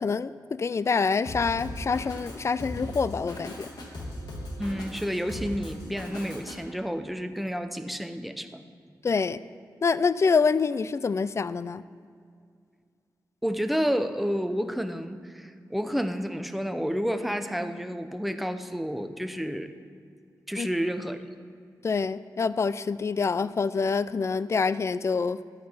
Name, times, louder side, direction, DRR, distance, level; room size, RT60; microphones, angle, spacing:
voice 1, 0.0-3.7 9.0-9.4 9.8-11.8 20.6-20.7 21.8-25.4, left 5 dB, 40° left, 16 dB, 0.4 m, -26 dB
Drum kit, 1.2-6.6, left 1 dB, 75° left, 2.0 m, -38 dB
voice 2, 4.6-8.6 13.4-19.7 20.5-21.2, equal, ahead, 8 dB, 0.7 m, -30 dB
12.0 x 8.5 x 5.6 m, 2.2 s
cardioid pair, 80°, 7 cm